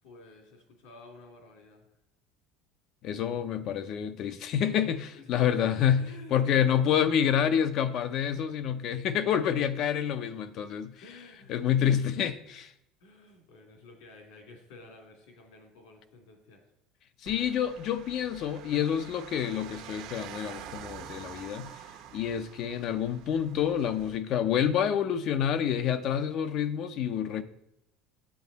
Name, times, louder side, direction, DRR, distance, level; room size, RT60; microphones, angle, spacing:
voice 1, 0.0-1.9 5.1-6.6 10.2-10.7 11.0-11.7 13.0-16.6, left 3 dB, 80° left, 2.7 m, -51 dB
voice 2, 3.0-6.0 6.3-10.9 11.5-12.7 17.2-21.7 22.1-27.4, left 9 dB, 40° left, 0.5 m, -28 dB
sound 1, 17.3-24.2, right 9 dB, 60° right, 1.1 m, -46 dB
8.6 x 8.1 x 4.0 m
cardioid pair, 170°, 0 cm